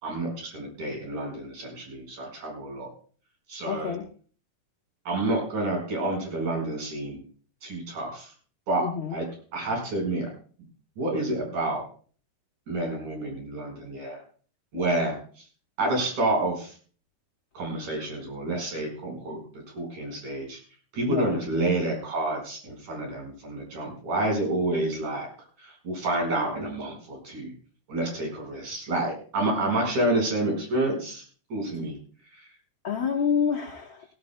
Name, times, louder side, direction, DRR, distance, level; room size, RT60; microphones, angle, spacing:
voice 1, 0.0-2.9 3.5-4.0 5.1-7.2 7.6-8.3 8.7-8.9 9.1-9.3 9.5-10.3 11.0-11.8 12.7-14.2 14.7-15.4 15.8-16.7 17.5-19.4 19.7-20.6 20.9-25.3 25.6-27.5 27.9-31.2 31.5-32.0 32.3-32.5, right 2 dB, 50° right, 1 dB, 6.2 m, -29 dB
voice 2, 3.7-4.0 8.8-9.1 21.1-21.4 32.8-34.0, left 7 dB, 75° left, -1 dB, 1.1 m, -27 dB
17.5 x 16.5 x 2.2 m, 0.42 s
omnidirectional pair, 4.3 m